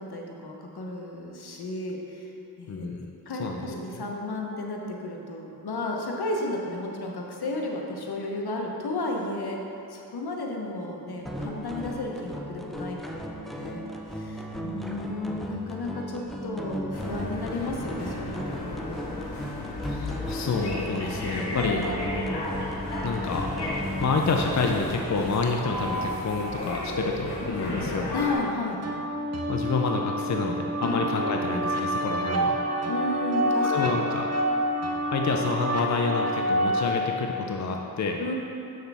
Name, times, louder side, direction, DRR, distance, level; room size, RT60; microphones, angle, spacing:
voice 1, 0.0-2.3 2.6-2.9 3.3-9.6 9.9-19.2 21.5-22.5 28.1-28.8 30.8-31.0 32.8-34.0 38.2-38.3, left 2 dB, 70° left, 0 dB, 1.0 m, -33 dB
voice 2, 2.7-3.1 3.4-4.0 19.8-21.8 23.0-23.5 24.0-28.1 29.5-32.6 33.6-34.3 35.1-38.2, left 4 dB, 45° left, 2 dB, 0.6 m, -28 dB
sound 1, 11.2-25.4, equal, ahead, 0.7 m, -36 dB
sound 2, 16.9-28.3, left 1 dB, 90° left, 1.4 m, -34 dB
sound 3, 28.8-36.8, equal, 40° right, 0.9 m, -27 dB
7.1 x 6.4 x 3.4 m, 2.8 s
cardioid pair, 45°, 40 cm